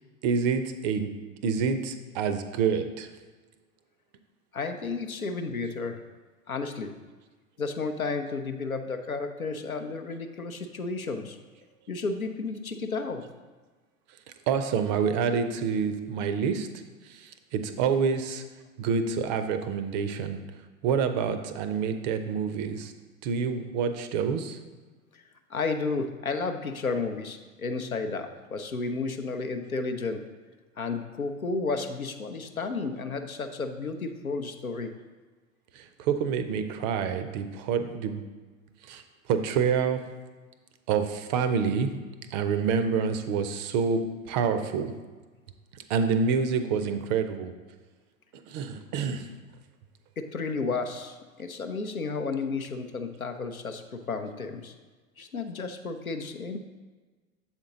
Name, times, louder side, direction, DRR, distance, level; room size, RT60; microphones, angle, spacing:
voice 1, 0.2-1.1 1.4-3.1 14.5-16.7 17.1-18.4 18.8-20.4 20.8-22.9 23.2-24.6 35.7-38.2 38.8-39.0 39.3-40.0 40.9-41.9 42.3-44.9 45.7-47.5 48.5-49.3, right 6 dB, 35° right, 10 dB, 0.5 m, -27 dB
voice 2, 4.5-6.0 6.5-6.9 7.6-11.4 11.9-13.3 25.1-25.2 25.5-30.3 30.8-34.9 50.2-54.7 55.2-56.6, left 4 dB, 90° left, 7 dB, 0.6 m, -32 dB
7.2 x 4.4 x 3.9 m, 1.3 s
figure-of-eight pair, 85°, 41 cm